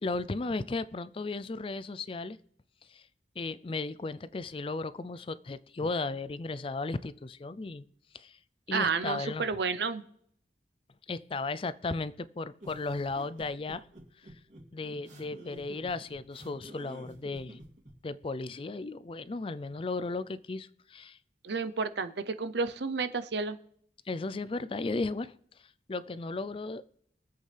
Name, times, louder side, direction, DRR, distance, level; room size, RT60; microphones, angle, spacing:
voice 1, 0.0-2.4 2.9-3.0 3.4-7.8 8.1-8.4 8.7-9.5 11.1-13.9 14.2-14.3 14.7-17.6 18.0-21.2 24.1-25.3 25.9-27.0, left 3 dB, 30° left, 16 dB, 0.4 m, -35 dB
voice 2, 8.7-10.0 21.4-23.6, right 5 dB, 75° right, 10 dB, 0.7 m, -31 dB
sound 1, 12.6-17.9, right 1 dB, 45° right, 2.8 m, -49 dB
23.0 x 8.0 x 3.4 m, 0.66 s
head